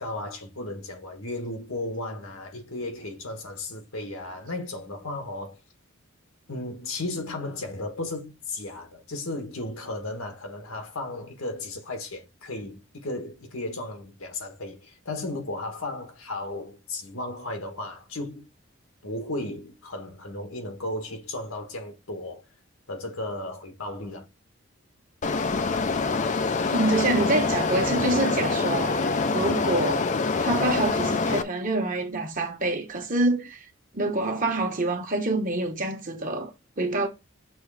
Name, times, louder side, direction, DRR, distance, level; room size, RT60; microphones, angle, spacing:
voice 1, 0.0-5.6 6.5-18.5 19.0-22.4 22.9-24.3, left 2 dB, 85° left, 1.5 m, -35 dB
sound 1, 25.2-31.4, left 4 dB, 35° left, 0.4 m, -25 dB
voice 2, 26.7-30.1 30.4-33.6 33.9-36.5 36.8-37.1, right 2 dB, 40° right, 1.2 m, -26 dB
6.4 x 3.1 x 4.8 m
head